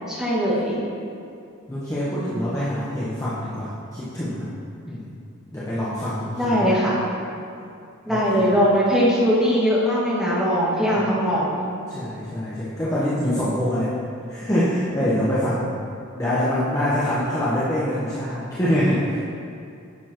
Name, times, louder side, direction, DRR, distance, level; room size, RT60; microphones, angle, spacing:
voice 1, 0.1-0.8 6.4-7.0 8.1-11.7, equal, ahead, -9 dB, 1.8 m, -20 dB
voice 2, 1.7-4.5 4.8-5.1 5.5-6.7 8.1-8.4 11.9-13.9 14.3-15.8 16.1-19.2, equal, 15° left, -10 dB, 1.0 m, -25 dB
10.0 x 7.1 x 3.0 m, 2.5 s
head